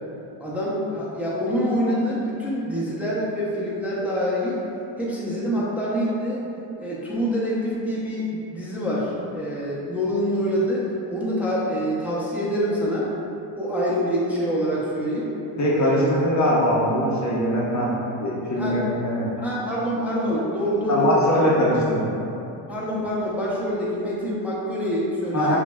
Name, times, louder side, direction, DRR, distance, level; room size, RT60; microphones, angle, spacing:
voice 1, 0.4-4.6 5.0-6.4 6.8-13.1 13.6-15.3 15.8-16.1 18.6-18.8 19.4-21.4 22.7-25.6, equal, 5° right, -8 dB, 0.6 m, -26 dB
voice 2, 15.6-17.9 18.2-19.3 20.9-22.2 25.3-25.6, equal, 35° left, -5 dB, 0.7 m, -21 dB
5.9 x 2.0 x 2.3 m, 2.8 s
cardioid pair, 85°, 47 cm